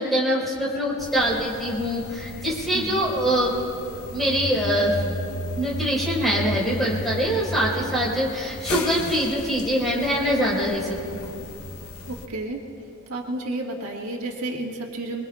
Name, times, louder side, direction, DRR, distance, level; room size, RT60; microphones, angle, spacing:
voice 1, 0.0-3.5 3.9-5.0 5.6-11.2, equal, ahead, -6 dB, 4.3 m, -24 dB
sound 1, 1.0-12.3, left 1 dB, 70° left, 0.8 m, -34 dB
voice 2, 2.7-3.1 12.1-12.6 13.1-15.2, right 2 dB, 90° right, -1 dB, 1.7 m, -31 dB
26.0 x 21.5 x 2.3 m, 2.9 s
head